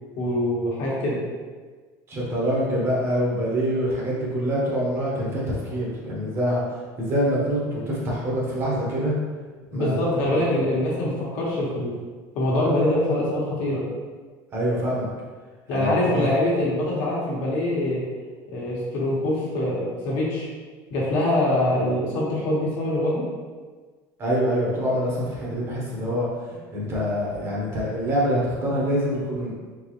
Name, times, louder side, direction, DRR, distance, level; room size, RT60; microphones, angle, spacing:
voice 1, 0.2-1.2 9.7-11.9 12.3-13.8 15.7-18.0 18.5-20.5 20.9-23.3, left 1 dB, 55° left, -5 dB, 1.3 m, -24 dB
voice 2, 2.1-6.6 7.0-9.1 9.7-10.0 14.5-15.1 15.7-16.3 24.2-26.3 26.7-29.5, equal, 30° right, -5 dB, 1.0 m, -25 dB
4.0 x 3.7 x 3.0 m, 1.4 s
cardioid pair, 175°, 9 cm